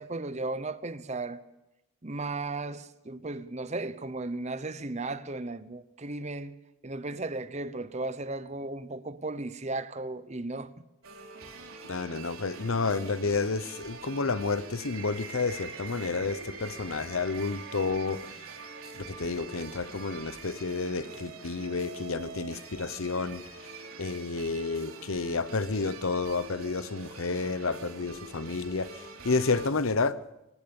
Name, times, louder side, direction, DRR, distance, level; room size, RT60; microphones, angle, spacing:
voice 1, 0.0-1.4 2.0-6.6 6.8-10.7, right 2 dB, 30° right, 0.8 m, -35 dB
sound 1, 11.0-29.7, right 4 dB, 90° right, 3.7 m, -45 dB
voice 2, 11.8-18.4 18.9-23.4 24.0-30.3, left 4 dB, 75° left, 0.9 m, -30 dB
sound 2, 14.8-22.3, right 4 dB, 60° right, 2.4 m, -48 dB
25.0 x 17.0 x 7.0 m
head